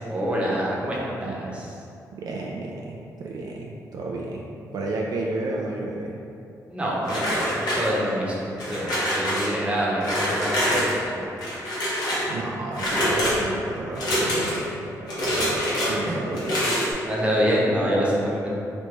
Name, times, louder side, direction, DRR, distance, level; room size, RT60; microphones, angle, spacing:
voice 1, 0.1-1.7 6.7-11.3 15.9-16.0 17.0-18.5, equal, 15° right, -5 dB, 0.9 m, -26 dB
voice 2, 1.1-1.6 2.2-6.2 12.3-15.5 15.9-16.8, right 2 dB, 65° right, -2 dB, 0.3 m, -32 dB
sound 1, 7.0-8.2 8.6-9.5 10.0-11.0 11.4-12.3 12.7-13.4 13.9-14.7 15.1-15.9 16.3-16.9, equal, 75° left, 1.0 m, -25 dB
3.0 x 2.9 x 3.3 m, 2.6 s
cardioid pair, 80°, 7 cm